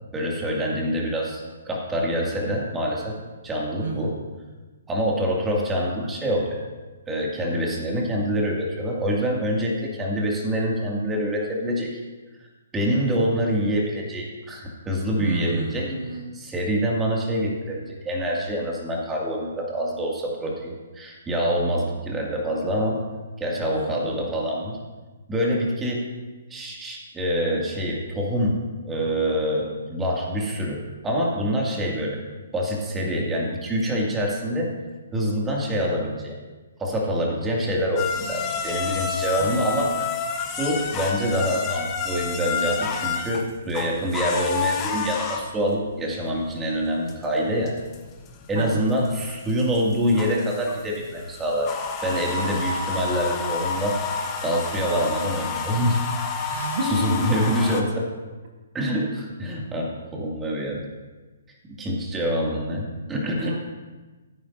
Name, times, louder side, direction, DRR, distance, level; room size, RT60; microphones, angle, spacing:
voice 1, 0.1-3.2 3.4-4.1 4.9-6.6 7.1-11.9 12.7-15.9 16.3-23.0 23.4-24.8 25.3-26.1 26.5-32.2 32.5-34.7 35.1-36.4 36.8-40.1 40.6-47.7 48.5-51.7 52.0-54.0 54.4-56.0 56.8-58.1 58.7-60.8 61.8-63.6, equal, 15° right, -2 dB, 2.2 m, -25 dB
voice 2, 3.8-4.1 15.2-16.4 23.8-24.0 39.4-39.7 48.5-48.9 56.5-57.3 63.4-63.6, right 2 dB, 65° right, 3 dB, 1.5 m, -30 dB
sound 1, 38.0-57.8, left 5 dB, 25° left, 1.3 m, -30 dB
16.5 x 9.6 x 2.6 m, 1.3 s
figure-of-eight pair, 135°, 0 cm